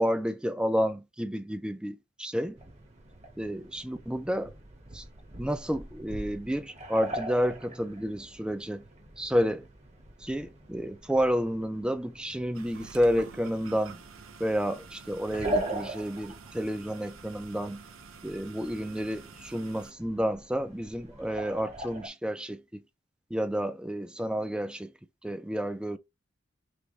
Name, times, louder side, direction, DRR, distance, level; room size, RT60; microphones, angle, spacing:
voice 1, 0.0-2.6 3.4-4.5 4.9-5.0 5.4-8.8 9.2-9.6 10.2-14.0 14.4-17.8 18.2-22.8 23.3-24.9 25.2-26.0, equal, 5° right, 0.3 m, -30 dB
sound 1, 2.6-22.1, right 1 dB, 30° right, 0.9 m, -41 dB
sound 2, 12.5-19.9, right 5 dB, 80° right, 0.6 m, -49 dB
3.3 x 3.0 x 3.9 m
head